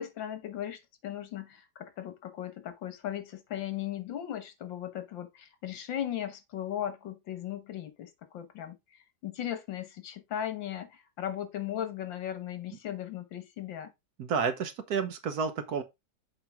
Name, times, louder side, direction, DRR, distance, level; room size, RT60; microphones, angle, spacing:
voice 1, 0.0-13.9, left 11 dB, 80° left, 1.9 m, -37 dB
voice 2, 14.2-15.8, right 6 dB, 60° right, 1.3 m, -30 dB
7.8 x 4.7 x 3.5 m
omnidirectional pair, 2.0 m